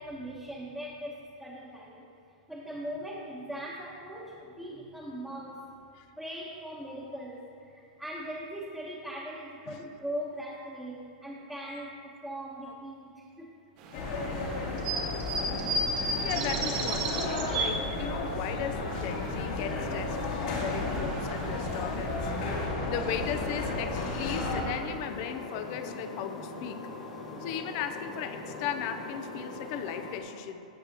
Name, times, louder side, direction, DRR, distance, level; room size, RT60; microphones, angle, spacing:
voice 1, 0.0-2.1 2.5-5.6 6.2-13.5, equal, ahead, -7 dB, 1.1 m, -40 dB
sound 1, 13.8-18.4 18.7-19.8 20.1-22.6, right 2 dB, 45° right, 1.5 m, -35 dB
sound 2, 13.9-24.6, left 2 dB, 65° left, 2.1 m, -33 dB
voice 2, 16.2-26.8 27.4-30.7, left 9 dB, 45° left, 9 dB, 0.6 m, -37 dB
sound 3, 23.1-30.2, left 3 dB, 85° left, 2.0 m, -42 dB
15.5 x 6.0 x 3.0 m, 2.4 s
hypercardioid pair, 140°, 4 cm